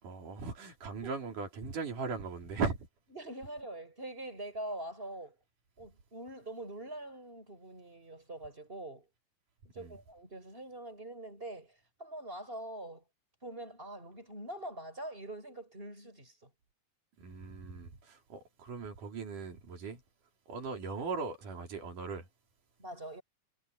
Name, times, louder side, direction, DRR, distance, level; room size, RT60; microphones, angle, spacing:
voice 1, 0.0-2.9 9.8-10.0 17.2-20.0 20.5-22.3, right 4 dB, 85° right, 5.3 m, -38 dB
voice 2, 3.1-5.4 5.8-9.1 9.7-13.0 13.4-16.5 22.8-23.2, right 1 dB, 15° right, 5.9 m, -44 dB
omnidirectional pair, 3.5 m